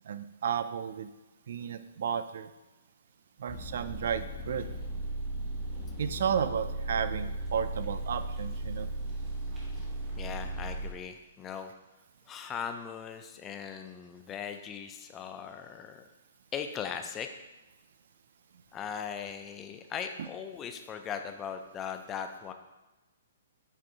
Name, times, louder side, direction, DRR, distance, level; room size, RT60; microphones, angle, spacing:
voice 1, 0.1-1.1 1.5-2.5 3.4-4.7 6.0-8.9 20.2-20.3, right 7 dB, 60° right, 12 dB, 0.4 m, -33 dB
sound 1, 3.5-10.9, right 1 dB, 15° right, 1.2 m, -36 dB
voice 2, 10.2-11.7 12.3-16.0 16.5-17.3 18.7-22.5, left 7 dB, 15° left, 6 dB, 0.4 m, -39 dB
7.5 x 2.6 x 4.7 m, 1.1 s
hypercardioid pair, 165°, 0 cm